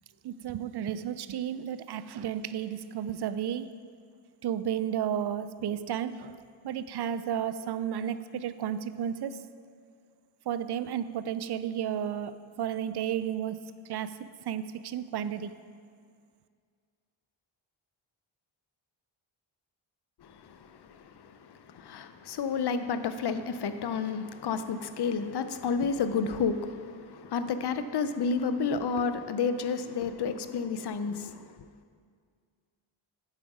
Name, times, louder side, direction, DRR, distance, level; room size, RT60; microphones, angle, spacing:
voice 1, 0.2-3.7 4.4-6.4 6.6-9.4 10.5-13.6 13.9-14.2 14.5-15.5, right 9 dB, 55° right, 13 dB, 0.5 m, -32 dB
voice 2, 20.2-20.7 21.2-31.5, left 5 dB, 55° left, 10 dB, 0.6 m, -31 dB
7.8 x 7.3 x 4.8 m, 2.1 s
cardioid pair, 85°, 48 cm